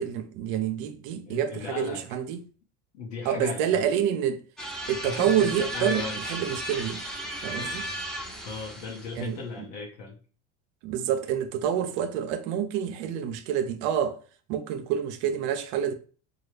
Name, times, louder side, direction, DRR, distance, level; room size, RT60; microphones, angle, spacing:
voice 1, 0.0-2.4 3.2-4.4 4.9-7.0 7.4-7.9 9.2-9.4 10.8-14.2 14.5-15.9, right 9 dB, 60° right, 0.6 m, -28 dB
voice 2, 1.3-2.0 2.9-3.9 5.0-6.2 7.6-8.0 8.4-10.2, left 4 dB, 65° left, 0.9 m, -37 dB
sound 1, 4.6-9.3, right 1 dB, ahead, 0.7 m, -35 dB
3.1 x 2.3 x 3.2 m
hypercardioid pair, 75°, 39 cm